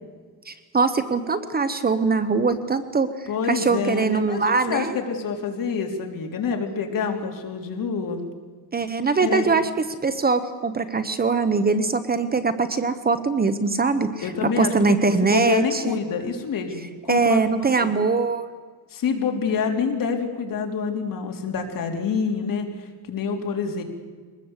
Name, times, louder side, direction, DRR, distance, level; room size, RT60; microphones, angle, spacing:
voice 1, 0.5-3.1 3.5-5.0 8.7-9.7 10.0-16.0 17.1-18.4, right 4 dB, 25° right, 10 dB, 1.1 m, -22 dB
voice 2, 3.3-8.2 9.2-9.5 14.2-14.7 15.2-17.9 18.9-22.7 23.1-23.8, left 6 dB, 55° left, 3 dB, 3.6 m, -27 dB
23.5 x 20.0 x 8.2 m, 1.5 s
cardioid pair, 155°, 40 cm